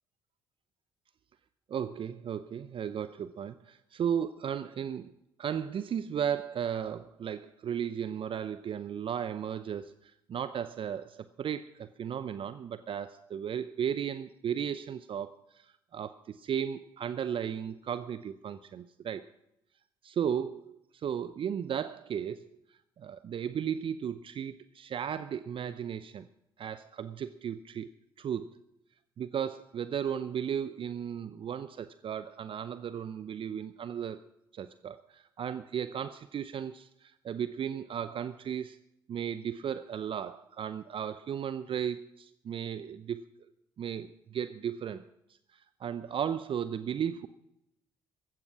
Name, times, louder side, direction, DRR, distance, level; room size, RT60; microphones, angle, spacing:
voice 1, 1.7-5.1 5.4-19.2 20.0-22.5 23.0-26.3 26.6-27.9 28.2-28.6 29.2-34.2 34.5-38.8 39.1-43.2 43.8-45.1 45.5-47.3, right 8 dB, 45° right, 14 dB, 0.6 m, -35 dB
15.5 x 13.5 x 4.7 m, 0.82 s
hypercardioid pair, 50°, 12 cm